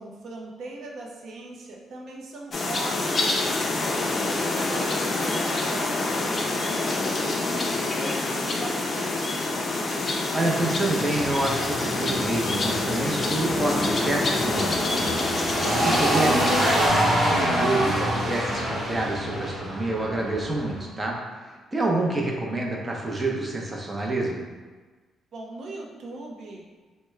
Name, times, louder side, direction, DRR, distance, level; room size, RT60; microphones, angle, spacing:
voice 1, 0.0-9.5 25.3-26.7, right 2 dB, 65° right, 0 dB, 0.6 m, -40 dB
sound 1, 2.5-16.9, left 2 dB, 40° left, 0.4 m, -27 dB
voice 2, 10.3-15.1 15.6-21.2 21.7-24.5, right 2 dB, 20° right, -1 dB, 0.6 m, -28 dB
sound 2, 11.1-20.8, equal, 50° right, 1.1 m, -26 dB
3.4 x 2.1 x 3.2 m, 1.4 s
cardioid pair, 90°, 0 cm